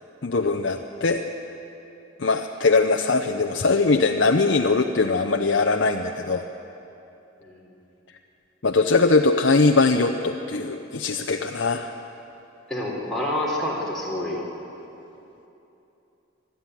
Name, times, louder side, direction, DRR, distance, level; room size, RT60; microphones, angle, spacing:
voice 1, 0.2-1.2 2.2-6.4 8.6-11.9, left 3 dB, 65° left, 4 dB, 0.7 m, -21 dB
voice 2, 12.7-14.4, left 1 dB, ahead, -6 dB, 3.7 m, -28 dB
21.5 x 13.5 x 9.3 m, 3.0 s
head